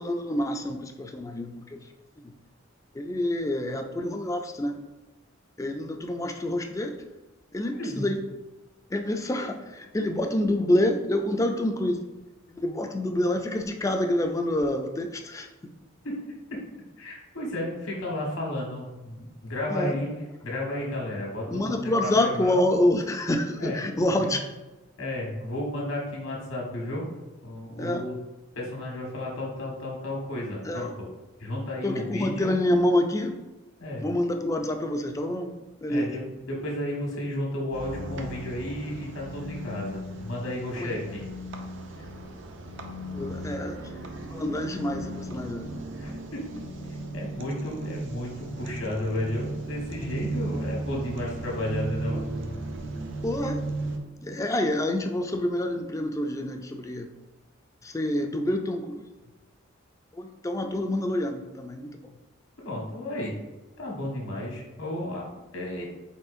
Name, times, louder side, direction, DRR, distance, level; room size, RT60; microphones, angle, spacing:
voice 1, 0.0-1.9 2.2-2.3 2.9-4.8 5.6-7.0 7.5-8.2 8.9-12.0 12.5-15.5 19.7-20.0 21.5-24.5 27.8-28.1 30.6-30.9 31.8-33.4 34.0-35.5 35.8-36.1 40.8-40.9 42.0-42.1 43.1-45.7 53.2-53.6 54.2-57.1 57.8-59.0 60.1-62.1, left 1 dB, 15° left, 5 dB, 0.3 m, -27 dB
voice 2, 16.0-16.6 17.0-20.1 20.4-22.6 23.6-23.8 25.0-27.1 27.4-28.1 28.5-30.9 31.4-32.5 33.8-34.0 35.9-41.2 46.0-46.4 47.1-52.2 54.3-54.4 62.6-63.4 63.8-65.8, left 1 dB, 80° left, -3 dB, 1.4 m, -33 dB
sound 1, 37.7-54.0, right 2 dB, 60° right, 0.5 m, -36 dB
4.3 x 4.2 x 2.5 m, 1.1 s
head